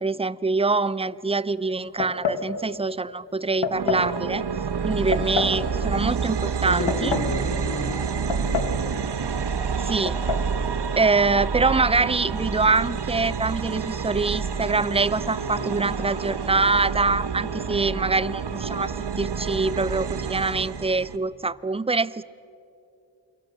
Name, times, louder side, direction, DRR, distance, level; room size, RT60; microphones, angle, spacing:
voice 1, 0.0-4.5 4.8-7.2 9.8-10.2 10.9-22.2, right 3 dB, 15° right, 19 dB, 0.5 m, -24 dB
sound 1, 2.0-2.5 3.6-4.1 5.1-5.6 6.6-7.3 8.3-8.8 9.1-9.2 10.1-10.5, left 6 dB, 85° left, 1.8 m, -27 dB
sound 2, 3.7-21.2, right 6 dB, 70° right, 1.2 m, -28 dB
voice 2, 6.6-9.0 10.5-10.7 15.4-15.9, left 2 dB, 55° left, 0 dB, 3.7 m, -33 dB
28.5 x 23.5 x 6.7 m, 2.7 s
wide cardioid pair, 75°, 42 cm